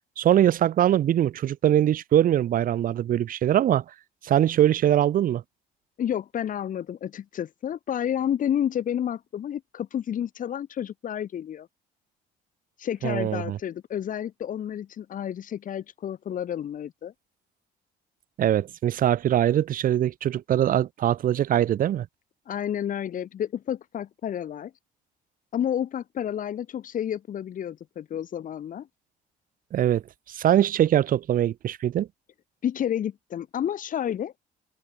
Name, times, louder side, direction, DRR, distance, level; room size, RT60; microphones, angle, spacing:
voice 1, 0.2-3.8 4.2-5.4 13.0-13.6 18.4-22.1 29.7-30.0 30.3-32.1, right 11 dB, 55° right, 1.4 m, -22 dB
voice 2, 6.0-11.7 12.8-17.1 22.5-24.7 25.5-28.9 32.6-34.3, left 9 dB, 50° left, 3.8 m, -30 dB
open air
cardioid pair, 110°, 17 cm